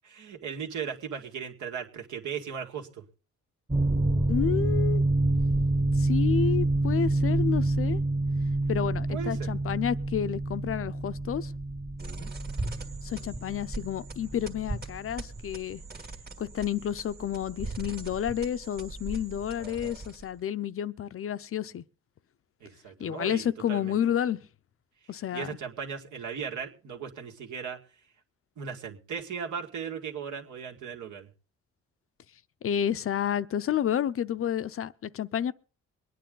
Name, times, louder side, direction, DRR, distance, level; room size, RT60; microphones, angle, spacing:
voice 1, 0.0-3.0 9.1-9.5 12.0-12.3 22.6-24.0 25.0-27.8 28.6-31.3, right 7 dB, 70° right, 2.1 m, -37 dB
sound 1, 3.7-15.0, right 2 dB, 15° right, 1.1 m, -27 dB
voice 2, 4.3-5.0 5.9-8.0 8.7-11.5 13.0-15.8 16.4-21.8 23.0-24.4 25.1-25.6 32.6-35.5, left 9 dB, 45° left, 0.6 m, -30 dB
sound 2, 12.0-20.4, right 2 dB, 30° right, 1.8 m, -40 dB
22.5 x 9.4 x 3.8 m
cardioid pair, 90°, 30 cm